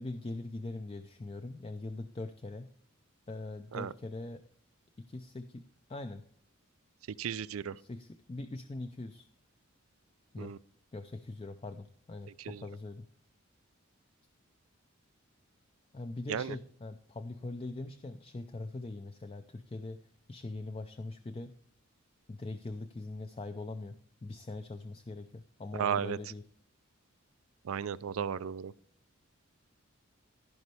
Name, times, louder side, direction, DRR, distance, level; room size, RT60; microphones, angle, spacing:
voice 1, 0.0-2.7 3.3-4.4 5.0-5.6 5.9-6.2 7.7-9.3 10.3-10.5 10.9-13.1 15.9-20.0 20.3-21.5 22.3-26.4, left 2 dB, 25° left, 8 dB, 0.4 m, -42 dB
voice 2, 7.2-7.8 10.4-10.6 12.4-12.7 16.3-16.6 25.7-26.2 27.6-28.7, right 8 dB, 80° right, 16 dB, 0.4 m, -34 dB
15.0 x 5.3 x 3.3 m, 0.64 s
head